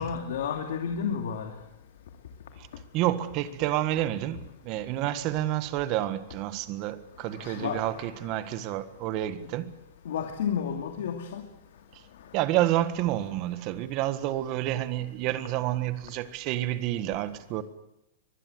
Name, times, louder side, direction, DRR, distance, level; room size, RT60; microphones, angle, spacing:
voice 1, 0.0-1.5 7.3-8.4 10.0-11.4, left 7 dB, 80° left, 2.6 m, -32 dB
voice 2, 2.9-9.7 11.9-12.0 12.3-17.6, right 14 dB, 35° right, 1.5 m, -29 dB
23.5 x 21.0 x 8.0 m
supercardioid pair, 170°, 0 cm